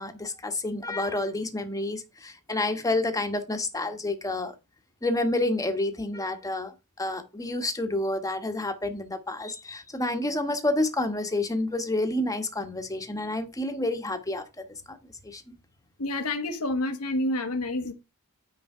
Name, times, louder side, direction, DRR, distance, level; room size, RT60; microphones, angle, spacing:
voice 1, 0.0-4.5 5.0-6.7 7.0-15.0 15.2-15.4, left 2 dB, 15° left, 1.4 m, -29 dB
voice 2, 16.0-17.9, left 1 dB, 80° left, 1.3 m, -28 dB
9.7 x 3.8 x 5.6 m
head